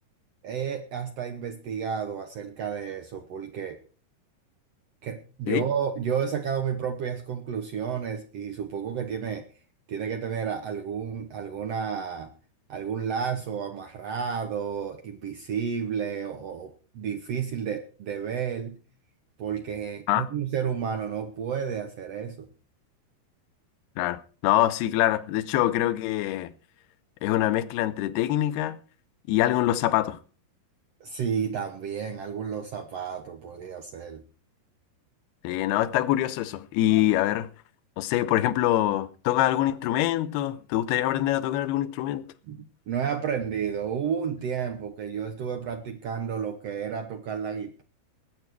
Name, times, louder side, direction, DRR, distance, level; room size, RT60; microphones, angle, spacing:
voice 1, 0.4-3.8 5.0-9.5 9.9-12.3 12.7-18.8 19.4-22.5 31.0-34.2 42.4-47.8, right 7 dB, 80° right, 1.4 m, -31 dB
voice 2, 24.0-26.5 27.2-28.8 29.3-30.2 35.4-37.5 38.0-42.3, left 14 dB, 80° left, 2.7 m, -24 dB
20.0 x 8.4 x 4.7 m
omnidirectional pair, 4.7 m